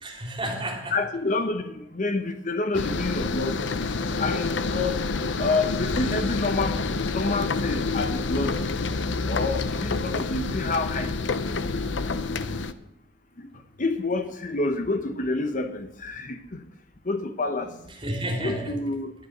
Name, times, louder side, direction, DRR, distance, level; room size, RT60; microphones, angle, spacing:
voice 1, 0.0-1.0 17.6-18.8, right 1 dB, 30° right, 0 dB, 3.4 m, -32 dB
voice 2, 0.9-3.8 4.2-5.0 5.4-6.8 7.1-8.8 9.3-11.6 13.4-13.5 13.8-16.6 17.0-17.7 18.4-19.1, left 3 dB, 45° left, 8 dB, 0.9 m, -28 dB
sound 1, 2.7-12.7, left 3 dB, 80° left, 0.7 m, -28 dB
11.5 x 10.5 x 6.7 m, 0.82 s
head